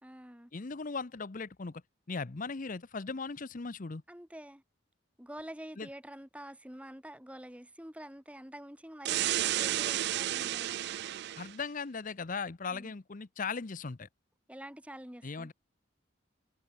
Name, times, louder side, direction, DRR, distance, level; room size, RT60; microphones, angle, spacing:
voice 1, 0.0-0.5 4.1-4.6 5.2-11.4 12.7-12.9 14.5-15.5, right 1 dB, 5° right, 2.1 m, -47 dB
voice 2, 0.5-1.8 2.1-4.0 5.8-5.9 11.4-14.1 15.2-15.5, left 4 dB, 40° left, 0.6 m, -38 dB
sound 1, 9.0-11.5, right 13 dB, 55° right, 0.3 m, -32 dB
head